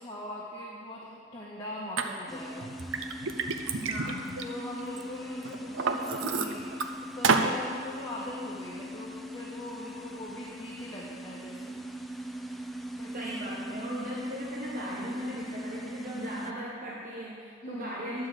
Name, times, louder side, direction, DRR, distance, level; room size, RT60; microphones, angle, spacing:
voice 1, 0.0-3.4 4.4-6.7 7.0-11.8 12.2-12.7 13.0-13.3 17.6-18.0, left 1 dB, 20° left, -7 dB, 1.3 m, -42 dB
Liquid, 2.0-2.1 2.6-5.0 5.4-6.9 7.2-7.5, right 4 dB, 85° right, 0.7 m, -29 dB
sound 1, 2.3-16.5, equal, ahead, 0.4 m, -40 dB
voice 2, 3.8-4.4 13.1-18.3, equal, 45° right, -5 dB, 1.2 m, -38 dB
11.5 x 4.8 x 7.8 m, 2.3 s
head